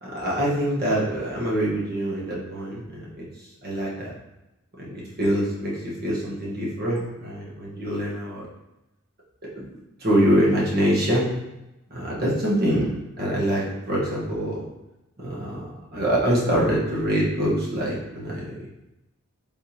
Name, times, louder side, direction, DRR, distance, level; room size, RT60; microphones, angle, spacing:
voice 1, 0.0-3.3 3.6-4.1 4.8-8.5 9.5-9.7 10.0-11.4 11.9-14.6 15.2-18.7, equal, 45° right, -5 dB, 1.1 m, -25 dB
4.5 x 3.5 x 2.8 m, 0.96 s
head